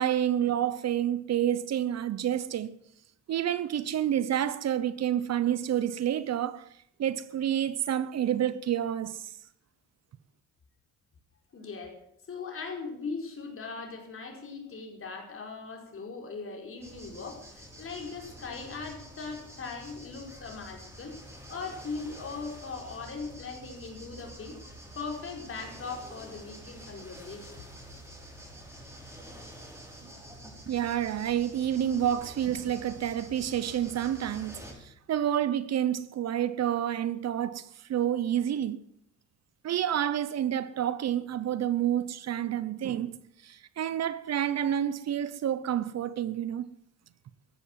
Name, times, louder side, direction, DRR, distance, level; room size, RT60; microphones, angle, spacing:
voice 1, 0.0-2.8 3.3-6.7 7.0-9.2 30.7-38.8 39.6-43.2 43.4-46.7, right 10 dB, 60° right, 0.9 m, -29 dB
voice 2, 11.5-12.0 12.3-21.2 21.5-24.6 24.9-27.7, left 4 dB, 45° left, 5.0 m, -39 dB
sound 1, 16.8-34.7, equal, 10° right, 6.6 m, -48 dB
14.5 x 11.5 x 7.5 m
cardioid pair, 90°, 30 cm